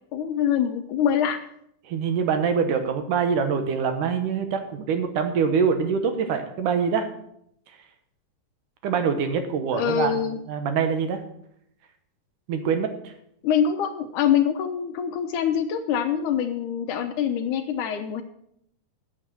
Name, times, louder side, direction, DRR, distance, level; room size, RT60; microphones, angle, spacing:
voice 1, 0.1-1.4 9.7-10.4 13.4-18.2, left 8 dB, 75° left, 7 dB, 2.0 m, -24 dB
voice 2, 1.9-7.1 8.8-10.2 10.5-11.2 12.5-13.1, right 6 dB, 75° right, 7 dB, 2.3 m, -24 dB
9.3 x 7.4 x 7.5 m, 0.73 s
omnidirectional pair, 4.0 m